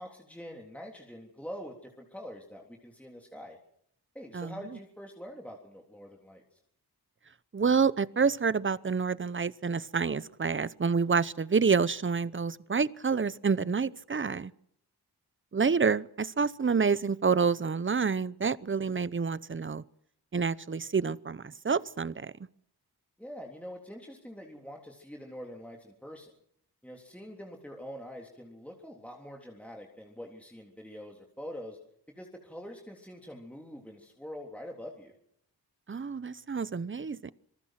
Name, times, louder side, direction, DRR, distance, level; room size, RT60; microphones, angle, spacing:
voice 1, 0.0-3.6 4.2-6.4 23.2-26.3 26.8-31.8 32.2-35.1, equal, 5° left, 0 dB, 3.5 m, -45 dB
voice 2, 7.5-14.5 15.5-19.8 20.3-22.3 35.9-37.3, right 5 dB, 30° right, 18 dB, 0.8 m, -28 dB
27.0 x 19.5 x 6.0 m, 0.70 s
cardioid pair, 65°, 39 cm